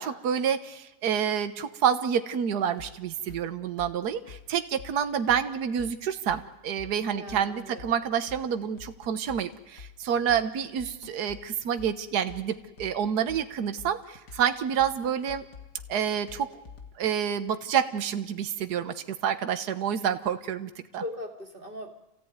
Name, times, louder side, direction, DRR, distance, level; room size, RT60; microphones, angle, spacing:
voice 1, 0.0-15.5 15.9-16.5 17.0-21.0, right 8 dB, 75° right, 10 dB, 1.6 m, -28 dB
sound 1, 2.8-17.1, left 6 dB, 80° left, 2.7 m, -48 dB
voice 2, 7.1-7.9 21.0-22.0, left 1 dB, 30° right, 4 dB, 2.5 m, -39 dB
27.5 x 16.5 x 9.4 m, 0.99 s
omnidirectional pair, 1.8 m